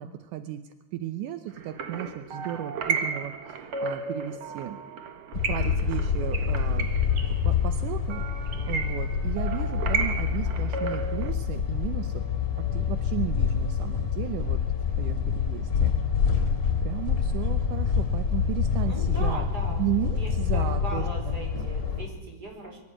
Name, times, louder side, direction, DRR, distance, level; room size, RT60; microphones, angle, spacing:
voice 1, 0.0-4.8 5.5-6.9 7.4-12.2 12.6-14.6 15.0-16.4 16.8-19.5 19.8-21.7, right 12 dB, 80° right, 10 dB, 2.4 m, -35 dB
sound 1, 1.5-11.3, right 5 dB, 50° right, 1.9 m, -34 dB
sound 2, 5.3-22.0, left 7 dB, 30° left, 3.5 m, -27 dB
voice 2, 18.8-22.8, right 2 dB, 30° right, 1 dB, 5.4 m, -39 dB
23.5 x 13.0 x 8.8 m, 1.1 s
omnidirectional pair, 3.7 m